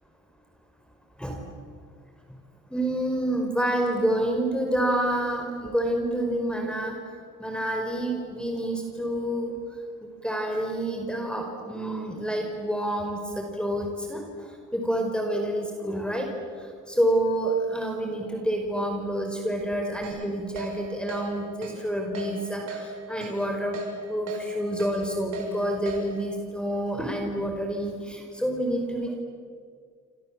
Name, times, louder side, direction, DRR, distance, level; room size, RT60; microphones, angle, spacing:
voice 1, 2.7-7.0 7.4-9.5 10.2-14.2 14.7-16.3 16.9-23.8 24.1-29.2, right 1 dB, 5° left, 2 dB, 5.0 m, -28 dB
Keyboard (musical), 20.0-20.2 20.6-20.7 21.1-21.2 21.6-21.7 22.1-22.3 22.7-22.8 23.2-23.3 23.7-23.9 24.3-24.4 24.8-24.9 25.3-25.5 25.9-26.0, right 6 dB, 80° right, 7.4 m, -36 dB
29.0 x 27.0 x 7.6 m, 2.1 s
cardioid pair, 90°, 30 cm